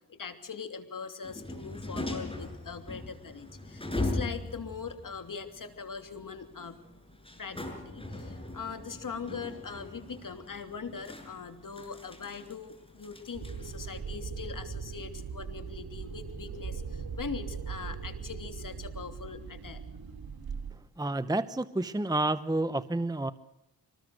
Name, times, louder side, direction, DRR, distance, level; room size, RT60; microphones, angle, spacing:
voice 1, 0.1-6.8 7.4-19.8, left 5 dB, 50° left, 8 dB, 3.0 m, -41 dB
sound 1, 1.2-14.0, left 2 dB, 15° left, 6.4 m, -40 dB
sound 2, 13.3-20.7, right 5 dB, 60° right, 3.8 m, -39 dB
voice 2, 21.0-23.3, right 2 dB, 10° right, 13 dB, 0.8 m, -29 dB
25.0 x 19.5 x 6.5 m, 0.88 s
cardioid pair, 70°, 40 cm